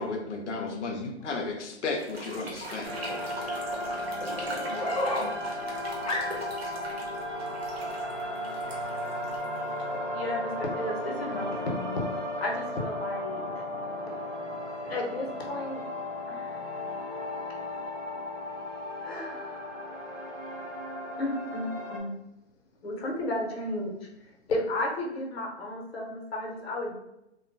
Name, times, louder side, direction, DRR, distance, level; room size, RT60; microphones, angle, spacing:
voice 1, 0.0-2.9, left 3 dB, 90° left, 1 dB, 0.6 m, -33 dB
sound 1, 1.9-9.9, right 1 dB, 60° right, 0.9 m, -42 dB
sound 2, 2.8-22.0, left 1 dB, 90° right, 0.8 m, -35 dB
voice 2, 4.2-5.6 5.9-6.6, left 1 dB, 35° left, -4 dB, 0.6 m, -33 dB
voice 3, 10.1-12.0 12.4-13.4 14.8-15.8 16.3-16.6 19.0-20.4 21.2-22.1 22.8-23.9 24.5-26.9, left 1 dB, 60° left, 0 dB, 0.9 m, -33 dB
2.2 x 2.2 x 2.5 m, 0.88 s
hypercardioid pair, 150°, 35 cm